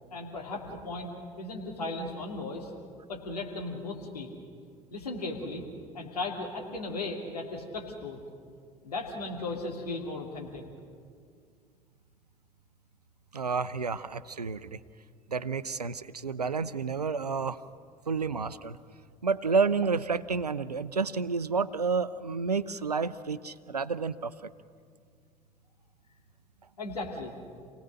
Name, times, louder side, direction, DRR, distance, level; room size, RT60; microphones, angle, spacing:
voice 1, 0.1-2.7 3.1-4.3 4.9-5.6 5.9-8.2 8.8-10.6 26.8-27.3, left 2 dB, 80° left, 1 dB, 2.6 m, -36 dB
voice 2, 13.3-14.8 15.3-17.6 18.1-18.8 19.2-24.3, right 5 dB, 90° right, 16 dB, 0.5 m, -30 dB
28.0 x 18.0 x 6.5 m, 2.1 s
figure-of-eight pair, 60°, 20 cm